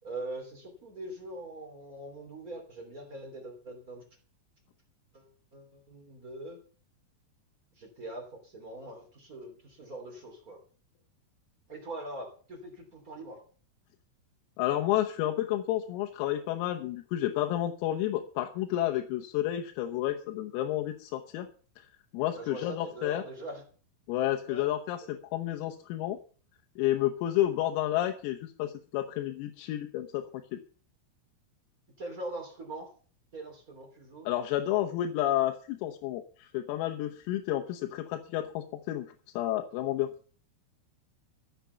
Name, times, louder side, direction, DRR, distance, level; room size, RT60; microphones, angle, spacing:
voice 1, 0.0-4.0 5.1-6.6 7.8-10.6 11.7-13.4 22.3-23.6 24.4-24.7 32.0-32.9 33.3-34.3, right 1 dB, 25° right, 3 dB, 2.2 m, -42 dB
voice 2, 14.6-21.5 21.8-21.9 22.1-23.2 24.1-26.2 26.8-30.6 34.3-39.1 39.4-40.1, left 13 dB, 90° left, 5 dB, 3.7 m, -30 dB
14.0 x 8.2 x 6.9 m, 0.41 s
omnidirectional pair, 6.0 m